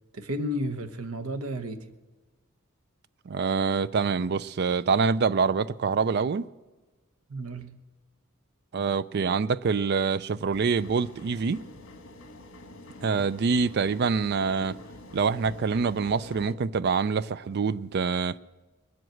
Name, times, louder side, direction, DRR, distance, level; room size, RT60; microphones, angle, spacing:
voice 1, 0.1-2.0 7.3-7.8, equal, 80° right, 1.0 m, -33 dB
voice 2, 3.3-6.4 8.7-11.6 13.0-14.8 15.1-18.4, right 5 dB, 50° right, 0.4 m, -25 dB
sound 1, 10.5-16.5, left 1 dB, 65° left, 1.6 m, -46 dB
21.0 x 7.8 x 7.7 m
head